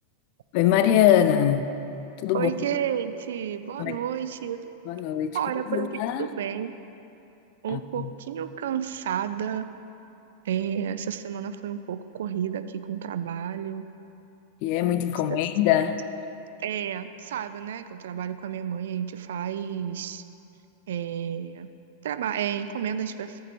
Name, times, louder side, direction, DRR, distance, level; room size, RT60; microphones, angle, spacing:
voice 1, 0.5-1.6 2.2-2.5 3.8-4.0 4.9-5.4 5.7-6.3 7.7-8.1 14.6-16.0, left 11 dB, 45° left, 11 dB, 0.4 m, -22 dB
voice 2, 2.3-4.6 5.3-6.7 7.6-9.7 10.4-13.8 15.3-15.4 16.6-20.2 20.9-21.7 22.0-23.4, right 9 dB, 60° right, 11 dB, 0.4 m, -31 dB
14.0 x 7.2 x 3.0 m, 2.8 s
figure-of-eight pair, 90°, 0 cm